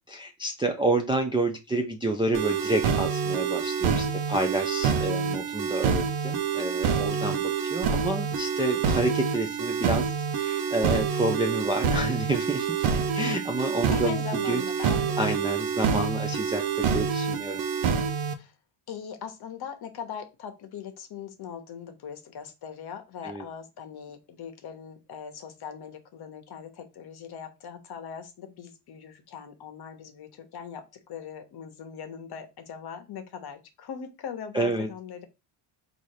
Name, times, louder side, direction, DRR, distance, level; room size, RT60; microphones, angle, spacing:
voice 1, 0.1-12.9 13.1-14.1 14.5-14.9 15.2-17.7 23.2-23.4 34.5-34.9, right 2 dB, 10° right, 1 dB, 0.4 m, -29 dB
sound 1, 2.3-18.3, right 6 dB, 85° right, 0.9 m, -27 dB
voice 2, 13.9-15.5 18.4-18.5 18.9-30.8 31.1-35.3, left 7 dB, 50° left, 8 dB, 1.1 m, -40 dB
4.2 x 2.7 x 4.7 m, 0.26 s
cardioid pair, 125°, 49 cm